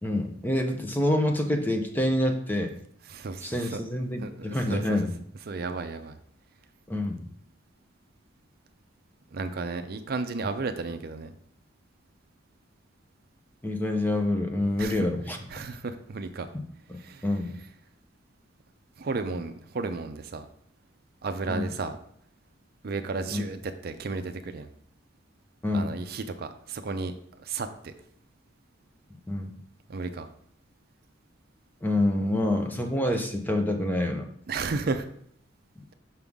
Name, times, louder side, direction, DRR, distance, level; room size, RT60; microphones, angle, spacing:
voice 1, 0.0-2.7 3.4-5.1 6.9-7.2 13.6-15.5 16.5-16.6 16.9-17.6 21.5-21.7 23.3-23.4 25.6-26.0 29.3-29.5 31.8-34.3, left 1 dB, 10° left, 3 dB, 0.6 m, -27 dB
voice 2, 3.1-3.8 4.2-5.0 5.5-6.1 9.3-11.3 14.8-15.1 15.5-16.5 17.0-17.3 19.0-20.5 21.2-22.0 22.8-24.7 25.7-27.1 27.4-27.9 29.9-30.3 34.5-35.1, right 3 dB, 50° right, 8 dB, 0.4 m, -33 dB
5.9 x 5.4 x 3.6 m, 0.66 s
head